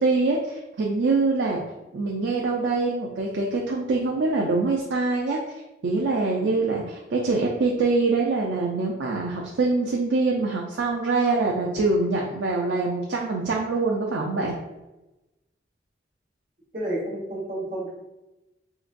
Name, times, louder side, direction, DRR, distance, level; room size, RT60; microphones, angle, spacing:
voice 1, 0.0-1.6 1.9-5.4 5.8-14.6, right 3 dB, 85° right, -1 dB, 0.5 m, -24 dB
voice 2, 16.7-17.9, right 1 dB, 50° right, -5 dB, 1.3 m, -30 dB
3.8 x 2.9 x 2.5 m, 1.0 s
head